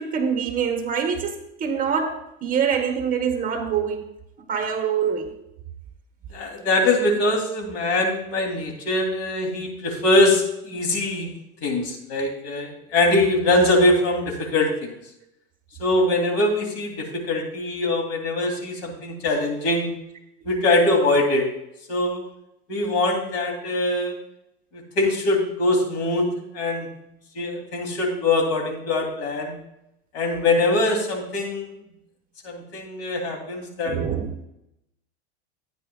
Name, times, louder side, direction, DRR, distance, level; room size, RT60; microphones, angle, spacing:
voice 1, 0.0-4.1 4.5-5.3 33.9-34.3, right 7 dB, 25° right, 1.2 m, -25 dB
voice 2, 6.3-11.3 11.6-14.9 15.8-19.9 20.4-21.5 21.9-22.2 22.7-24.1 24.7-26.3 26.5-26.9 27.3-29.6 30.1-31.7 32.4-34.0, left 2 dB, 75° left, 3.1 m, -22 dB
14.0 x 9.2 x 2.4 m
supercardioid pair, 145°, 33 cm